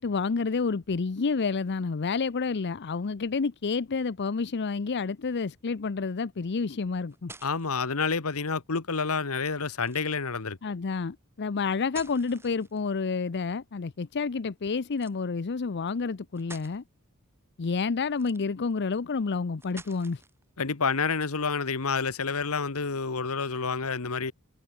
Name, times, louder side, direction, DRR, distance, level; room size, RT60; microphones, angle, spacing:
voice 1, 0.0-7.3 10.6-16.8 17.6-20.2, left 4 dB, 50° left, 0.6 m, -29 dB
sound 1, 6.8-7.8 9.8-10.2 11.7-13.0 14.9-15.2 15.9-16.0 16.3-16.8 18.1-18.7 19.6-20.4, right 3 dB, 10° right, 1.5 m, -49 dB
voice 2, 7.4-10.6 20.6-24.3, left 5 dB, 70° left, 1.3 m, -29 dB
head